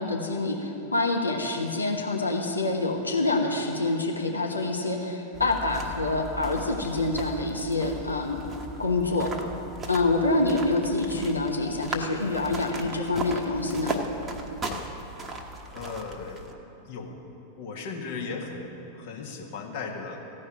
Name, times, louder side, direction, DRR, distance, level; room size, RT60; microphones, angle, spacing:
voice 1, 0.0-8.4 8.8-9.3 9.9-14.0, left 2 dB, 80° left, 0 dB, 1.1 m, -26 dB
sound 1, 5.3-16.5, right 2 dB, 20° right, 1.2 m, -37 dB
voice 2, 15.7-16.4 16.9-17.2 17.6-20.2, left 4 dB, 50° left, 1 dB, 1.7 m, -36 dB
15.5 x 5.4 x 9.3 m, 3.0 s
figure-of-eight pair, 90°, 0 cm